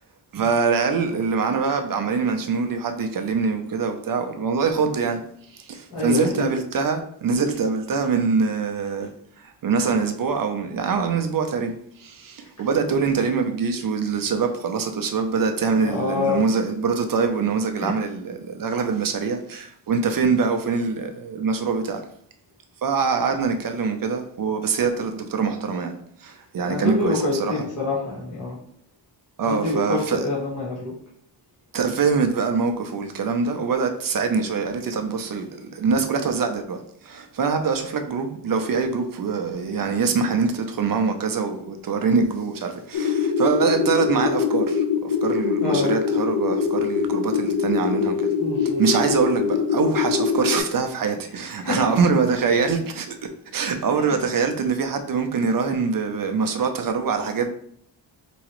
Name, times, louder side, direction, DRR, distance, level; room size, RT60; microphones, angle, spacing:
voice 1, 0.3-5.2 5.5-9.1 9.6-22.0 22.8-25.9 26.2-27.6 29.4-30.3 31.7-48.3 48.6-53.2 53.5-57.5, right 5 dB, 50° right, 0.6 m, -24 dB
voice 2, 5.9-6.5 12.8-13.1 15.7-16.4 26.6-28.6 29.4-30.9 45.6-45.9 48.4-48.8 51.6-52.0 53.9-54.2, left 3 dB, 40° left, 1.5 m, -26 dB
sound 1, 42.9-50.6, left 6 dB, 80° left, 0.8 m, -23 dB
4.8 x 3.1 x 3.0 m
wide cardioid pair, 135°, 44 cm